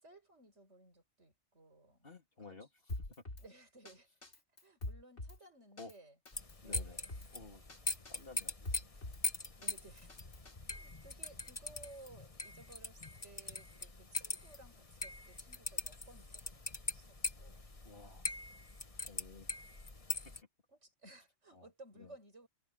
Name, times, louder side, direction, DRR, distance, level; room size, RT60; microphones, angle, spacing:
voice 1, 0.0-2.1 2.5-2.6 3.4-6.1 6.6-7.3 9.6-10.1 10.7-17.7 20.7-22.5, right 2 dB, 75° right, 6.4 m, -59 dB
voice 2, 2.0-3.1 5.8-5.9 6.6-7.0 7.3-7.6 8.1-8.9 17.8-18.2 19.0-19.5 21.5-21.7 21.9-22.1, left 3 dB, 50° left, 3.3 m, -53 dB
Drum kit, 2.9-3.5 3.9-4.0 4.2-5.4 5.8-5.9 6.3-7.3 7.7-7.8 8.1-9.2 9.6-10.5, left 2 dB, 70° left, 3.9 m, -44 dB
sound 1, 6.3-20.4, left 3 dB, 30° left, 1.5 m, -42 dB
omnidirectional pair, 1.2 m